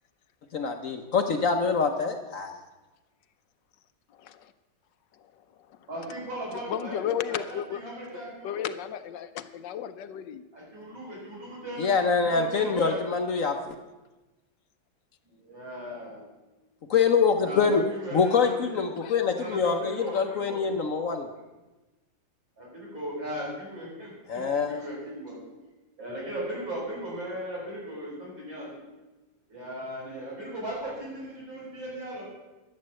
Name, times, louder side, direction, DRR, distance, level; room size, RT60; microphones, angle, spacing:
voice 1, 0.5-2.5 11.8-13.7 16.9-17.8 18.1-21.3 24.3-24.8, left 5 dB, 60° left, 1.0 m, -25 dB
voice 2, 4.2-4.5 6.0-6.1 6.5-7.8 8.4-10.4 18.9-19.3 20.1-20.3, left 9 dB, 75° left, 1.3 m, -34 dB
voice 3, 5.9-7.0 7.3-8.6 10.5-13.0 15.3-16.2 17.4-18.8 19.4-20.7 22.6-25.4 26.0-28.7 29.5-32.2, equal, 80° right, 6.2 m, -37 dB
11.5 x 8.3 x 7.5 m
omnidirectional pair, 2.0 m